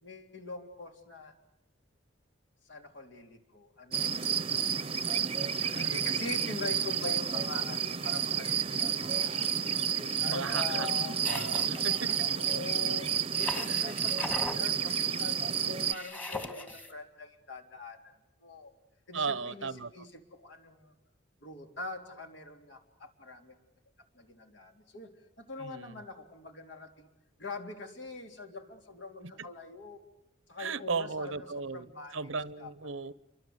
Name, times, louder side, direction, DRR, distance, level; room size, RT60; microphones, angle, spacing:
voice 1, 0.0-1.3 2.7-9.5 9.9-11.2 11.7-18.1 18.4-18.7 19.1-20.9 21.4-23.6 24.1-27.1 27.4-30.0 30.5-32.2 32.6-32.7, left 3 dB, 65° left, 3.7 m, -44 dB
sound 1, 3.9-15.9, right 8 dB, 30° right, 0.9 m, -30 dB
voice 2, 5.7-6.8 10.2-10.9 11.2-12.1 13.7-13.8 19.1-19.9 25.6-26.0 29.2-29.5 30.6-33.1, right 4 dB, 85° right, 1.0 m, -37 dB
sound 2, 11.2-12.2 13.3-14.6 15.9-16.9, left 2 dB, 10° left, 1.9 m, -39 dB
29.5 x 24.5 x 8.1 m
head